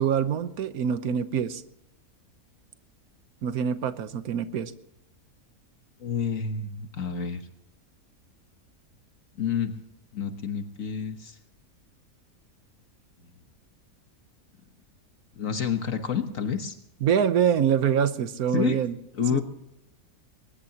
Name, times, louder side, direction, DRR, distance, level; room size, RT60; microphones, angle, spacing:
voice 1, 0.0-1.6 3.4-4.7 17.0-18.9 19.3-19.4, right 8 dB, 85° right, 11 dB, 1.4 m, -25 dB
voice 2, 6.0-7.4 9.4-9.7 10.1-11.4 13.2-13.3 15.4-16.8 18.5-18.8 19.1-19.4, left 7 dB, 65° left, 7 dB, 1.6 m, -29 dB
22.0 x 20.5 x 2.9 m, 0.83 s
omnidirectional pair, 1.5 m